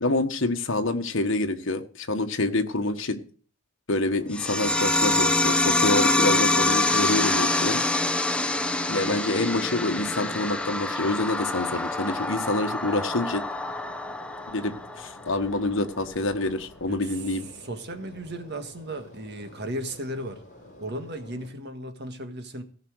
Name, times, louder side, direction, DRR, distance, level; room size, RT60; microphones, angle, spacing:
voice 1, 0.0-3.2 3.9-7.8 8.9-13.4 14.5-17.4, left 2 dB, 60° left, 6 dB, 1.4 m, -27 dB
sound 1, 3.9-21.5, left 1 dB, 35° left, 4.3 m, -50 dB
sound 2, 4.3-15.3, left 2 dB, 5° left, 0.9 m, -25 dB
voice 2, 16.9-17.2 17.5-20.4 20.8-22.6, right 1 dB, 50° right, 7 dB, 1.6 m, -36 dB
17.0 x 5.9 x 6.4 m, 0.43 s
head